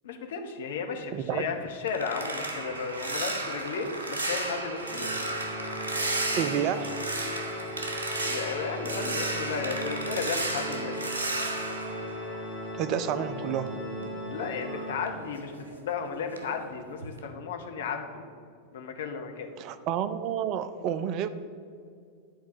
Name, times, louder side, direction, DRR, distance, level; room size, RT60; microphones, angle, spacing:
voice 1, 0.0-5.1 8.2-11.2 14.3-18.2 18.7-19.5, left 5 dB, 60° left, 4 dB, 1.1 m, -34 dB
voice 2, 1.1-1.5 6.4-7.0 12.7-13.7 19.6-21.3, right 9 dB, 40° right, 12 dB, 0.5 m, -30 dB
sound 1, 1.3-13.0 13.3-16.0 16.3-16.6 17.0-17.3, right 2 dB, 70° right, 1.1 m, -34 dB
Organ, 4.8-15.5, left 1 dB, 10° right, 2.0 m, -38 dB
10.5 x 4.6 x 7.1 m, 2.3 s
figure-of-eight pair, 90°, 0 cm